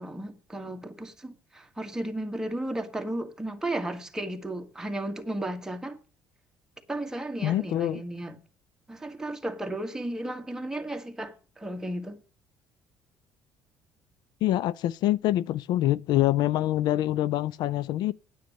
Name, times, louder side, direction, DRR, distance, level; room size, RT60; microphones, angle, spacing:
voice 1, 0.0-6.0 6.9-8.4 8.9-12.2, right 1 dB, 10° right, 1.8 m, -34 dB
voice 2, 7.4-8.0 14.4-18.1, left 14 dB, 70° left, 0.4 m, -25 dB
9.4 x 8.5 x 6.5 m
cardioid pair, 105°, 8 cm